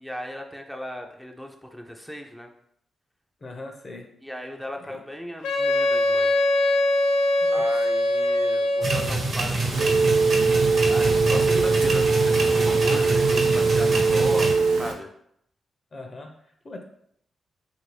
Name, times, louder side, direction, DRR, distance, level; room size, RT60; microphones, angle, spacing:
voice 1, 0.0-2.5 4.2-6.5 7.5-10.0 10.9-15.1, left 1 dB, ahead, 3 dB, 0.4 m, -36 dB
voice 2, 3.4-4.1 4.8-5.0 7.4-7.7 15.9-16.8, left 2 dB, 45° left, 4 dB, 0.6 m, -41 dB
Wind instrument woodwind instrument, 5.4-9.2, left 1 dB, 85° left, 0.3 m, -22 dB
sound 1, 8.8-14.5, right 2 dB, 60° right, 0.9 m, -26 dB
Telephone, 9.7-14.9, right 4 dB, 90° right, 0.4 m, -21 dB
2.9 x 2.6 x 3.1 m, 0.71 s
supercardioid pair, 50°, 0 cm